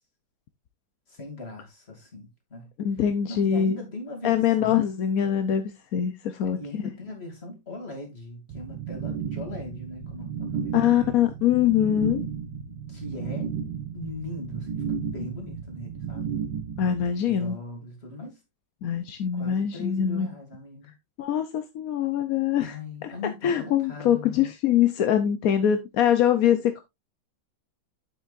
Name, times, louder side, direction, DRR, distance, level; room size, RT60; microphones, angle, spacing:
voice 1, 1.1-2.7 3.3-4.9 6.4-11.2 12.9-13.5 13.9-16.4 17.2-18.4 19.3-20.9 22.6-24.5, left 2 dB, 30° left, 3.0 m, -39 dB
voice 2, 2.8-3.7 4.2-6.8 10.7-12.2 16.8-17.6 18.8-20.3 21.2-22.8 23.0-23.1 23.4-26.8, left 10 dB, 65° left, 0.9 m, -23 dB
sound 1, 8.5-17.1, right 7 dB, 80° right, 1.7 m, -33 dB
8.5 x 7.9 x 2.5 m
omnidirectional pair, 2.2 m